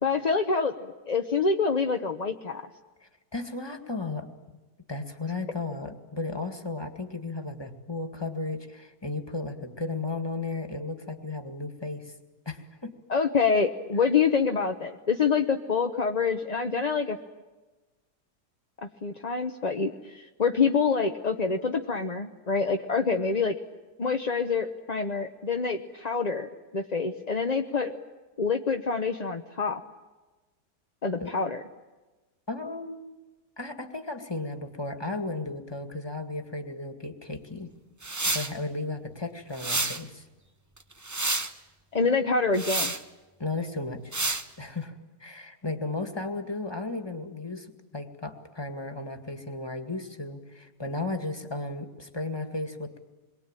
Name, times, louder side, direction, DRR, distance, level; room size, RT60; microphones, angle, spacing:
voice 1, 0.0-2.6 13.1-17.2 18.8-23.6 24.0-27.9 28.4-29.8 31.0-31.6 41.9-42.9, left 5 dB, 30° left, 4 dB, 0.8 m, -26 dB
voice 2, 3.3-4.3 4.9-12.1 12.5-12.9 31.2-31.3 32.5-33.1 33.6-37.7 38.3-40.3 43.4-44.0 44.6-53.0, left 3 dB, 15° left, 6 dB, 2.0 m, -34 dB
sound 1, 38.0-38.5 39.6-40.0 40.8-41.5 42.5-43.0 44.1-44.4, right 2 dB, 20° right, 0.4 m, -29 dB
27.5 x 22.5 x 9.0 m, 1.2 s
omnidirectional pair, 1.8 m